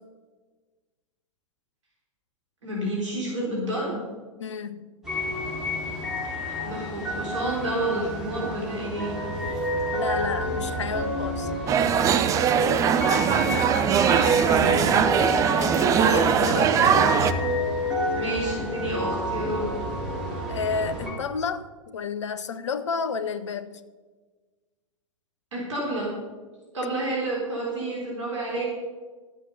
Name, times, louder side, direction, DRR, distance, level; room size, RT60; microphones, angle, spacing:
voice 1, 2.6-4.0 6.2-6.4 6.6-9.1 13.2-13.7 14.0-15.1 18.1-19.7 25.5-26.1 26.7-28.6, right 1 dB, 65° right, -4 dB, 3.9 m, -30 dB
voice 2, 4.4-4.8 9.9-11.5 14.1-14.4 15.5-17.1 20.5-23.7, left 5 dB, 60° left, 13 dB, 0.8 m, -31 dB
sound 1, 5.0-21.1, equal, 5° right, 3.8 m, -30 dB
sound 2, 11.7-17.3, right 8 dB, 20° right, 0.6 m, -21 dB
12.5 x 8.3 x 5.6 m, 1.4 s
figure-of-eight pair, 100°, 17 cm